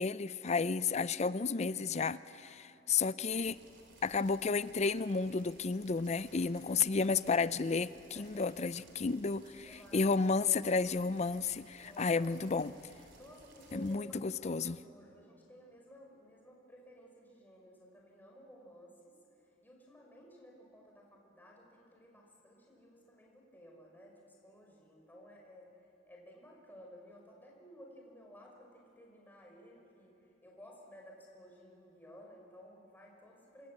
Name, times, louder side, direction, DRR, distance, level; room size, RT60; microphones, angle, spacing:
voice 1, 0.0-3.6 4.0-9.7 9.9-12.7 13.7-14.8, left 4 dB, 35° left, 15 dB, 0.5 m, -32 dB
sound 1, 3.3-14.0, right 2 dB, 60° right, 3.8 m, -60 dB
voice 2, 6.7-7.3 8.1-8.5 9.6-10.3 11.8-12.7 13.2-25.8 26.1-33.7, equal, 10° left, -1 dB, 5.4 m, -56 dB
27.0 x 20.5 x 8.7 m, 2.9 s
head